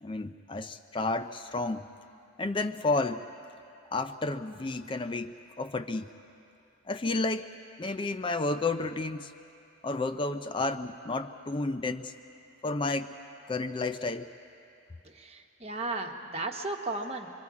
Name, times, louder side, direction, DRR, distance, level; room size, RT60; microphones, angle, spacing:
voice 1, 0.0-1.9 2.4-3.2 3.9-6.1 6.9-7.5 7.8-9.3 9.8-12.1 12.6-13.1 13.5-14.3, left 3 dB, 25° left, 9 dB, 0.4 m, -31 dB
voice 2, 15.0-17.3, right 2 dB, 30° right, 3 dB, 1.1 m, -35 dB
25.5 x 23.5 x 4.8 m, 2.7 s
head